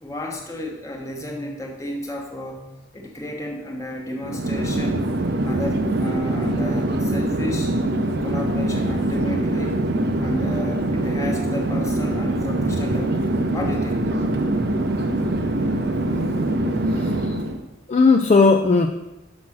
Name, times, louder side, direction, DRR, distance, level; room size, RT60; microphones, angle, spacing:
voice 1, 0.0-2.7 2.9-5.1 5.4-7.7 8.2-9.8 10.2-14.0, left 1 dB, 15° left, 0 dB, 1.2 m, -32 dB
Chatter / Fixed-wing aircraft airplane, 4.2-17.6, right 1 dB, 55° right, 0.7 m, -23 dB
voice 2, 17.0-17.3 17.9-18.9, left 4 dB, 35° left, 5 dB, 0.3 m, -16 dB
6.3 x 6.1 x 5.8 m, 0.97 s
head